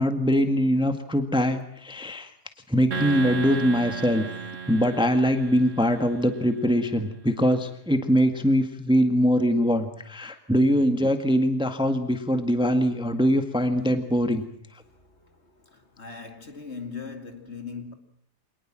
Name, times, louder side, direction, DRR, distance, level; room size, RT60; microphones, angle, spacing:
voice 1, 0.0-2.3 2.7-4.3 4.7-14.4, equal, 5° right, 1.7 m, -22 dB
sound 1, 2.9-6.4, right 6 dB, 50° right, 1.7 m, -34 dB
voice 2, 14.8-17.9, left 5 dB, 40° left, 2.8 m, -40 dB
26.0 x 20.0 x 7.6 m
omnidirectional pair, 1.7 m